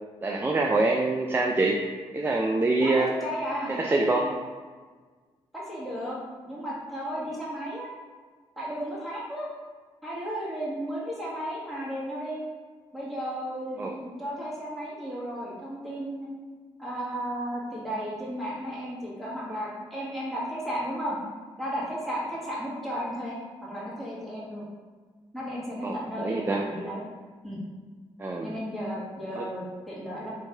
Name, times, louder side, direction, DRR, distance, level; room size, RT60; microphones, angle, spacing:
voice 1, 0.2-1.8 2.1-3.1 3.8-4.3 13.8-13.9 25.8-26.6 28.2-28.5 29.4-29.5, right 2 dB, 20° right, 1 dB, 0.4 m, -25 dB
voice 2, 2.8-4.3 5.5-6.2 6.5-7.9 8.6-9.5 10.0-12.4 12.9-16.3 16.8-21.2 21.6-24.6 25.3-27.0 27.4-27.6 28.4-30.3, equal, ahead, -7 dB, 1.5 m, -34 dB
3.1 x 2.6 x 3.4 m, 1.5 s
supercardioid pair, 55°, 11 cm